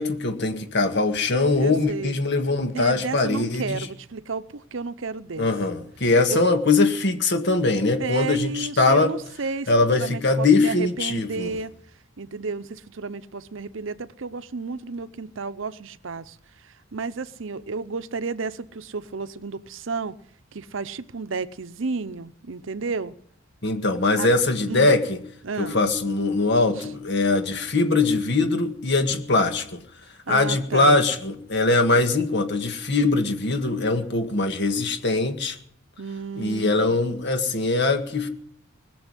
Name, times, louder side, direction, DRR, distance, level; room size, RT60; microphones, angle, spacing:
voice 1, 0.0-3.9 5.4-9.1 9.7-11.5 23.6-25.2 25.6-29.8 30.3-35.6 36.4-38.3, left 3 dB, 60° left, 1.8 m, -22 dB
voice 2, 1.6-2.2 2.7-5.5 6.3-6.4 8.0-11.7 12.2-16.4 16.6-20.2 20.5-23.2 24.2-24.3 24.7-25.0 25.4-25.8 26.8-26.9 30.3-31.0 36.0-37.1, right 4 dB, 70° right, 0.7 m, -32 dB
20.5 x 7.0 x 9.9 m
head